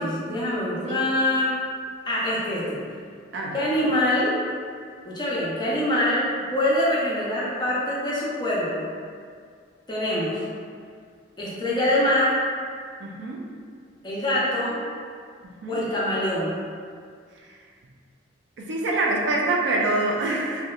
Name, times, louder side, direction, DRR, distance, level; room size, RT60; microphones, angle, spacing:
voice 1, 0.0-1.6 2.1-2.8 3.5-4.4 5.0-8.9 9.9-10.4 11.4-12.4 14.0-14.8 15.7-16.6, left 1 dB, 25° left, -7 dB, 0.5 m, -24 dB
voice 2, 13.0-13.4 15.6-15.8 18.6-20.6, right 2 dB, 65° right, -2 dB, 0.4 m, -25 dB
2.7 x 2.1 x 2.3 m, 2.1 s
head